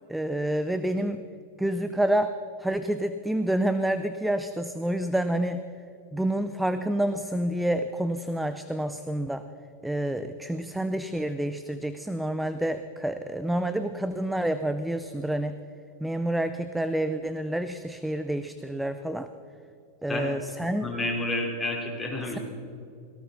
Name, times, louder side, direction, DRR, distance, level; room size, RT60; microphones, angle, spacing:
voice 1, 0.1-1.2 1.6-2.3 2.6-5.6 6.1-9.4 9.8-15.5 16.0-19.3 20.0-20.9, right 1 dB, 5° right, 10 dB, 0.6 m, -28 dB
voice 2, 20.8-22.4, left 2 dB, 10° left, -1 dB, 3.8 m, -30 dB
17.5 x 17.0 x 4.1 m, 2.7 s
hypercardioid pair, 120°, 0 cm